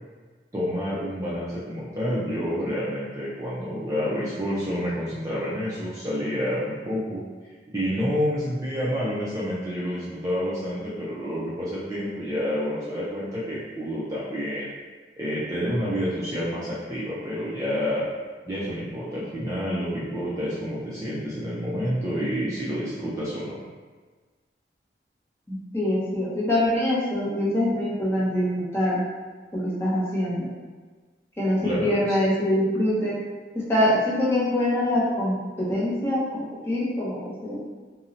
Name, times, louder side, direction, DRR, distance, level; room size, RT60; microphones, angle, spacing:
voice 1, 0.5-7.2 7.7-14.7 15.2-18.0 18.5-23.6 31.6-32.2, equal, 20° right, -8 dB, 0.4 m, -28 dB
voice 2, 25.5-29.0 29.5-30.5 31.4-33.2 33.5-37.6, left 1 dB, 15° left, -7 dB, 0.7 m, -24 dB
2.7 x 2.0 x 3.7 m, 1.4 s
head